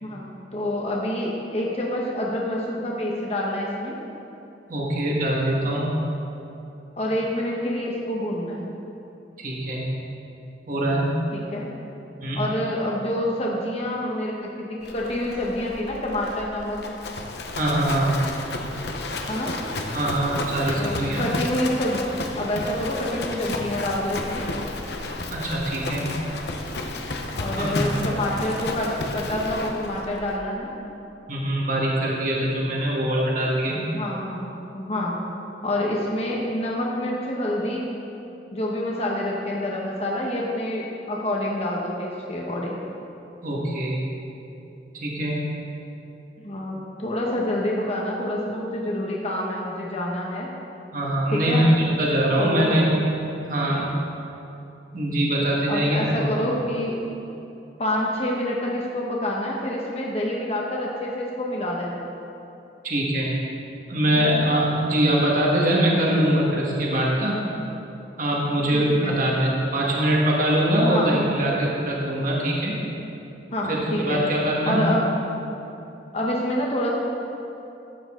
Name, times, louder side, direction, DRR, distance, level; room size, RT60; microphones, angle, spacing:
voice 1, 0.0-4.0 7.0-8.7 11.3-11.7 12.3-17.0 19.3-19.5 20.8-22.0 22.4-24.5 27.4-30.7 33.7-35.1 35.6-37.8 38.5-42.8 46.4-50.5 51.3-51.7 52.4-52.8 55.7-57.0 57.8-62.1 64.1-64.5 68.7-69.2 70.9-71.2 73.5-74.2 74.7-75.1 76.1-76.9, left 1 dB, 35° left, -3 dB, 1.1 m, -27 dB
voice 2, 4.7-5.9 9.4-9.9 10.7-11.2 12.2-12.4 17.6-18.2 19.9-21.3 25.3-26.1 27.5-28.1 31.3-33.8 43.4-44.0 44.9-45.4 50.9-52.9 53.4-53.9 54.9-56.2 62.8-63.4 63.9-67.4 68.2-72.8 73.7-74.9, right 1 dB, 50° right, -4 dB, 1.8 m, -23 dB
Livestock farm animals working animals, 14.8-30.4, left 2 dB, 65° left, 0.9 m, -32 dB
13.5 x 8.8 x 3.8 m, 2.9 s
head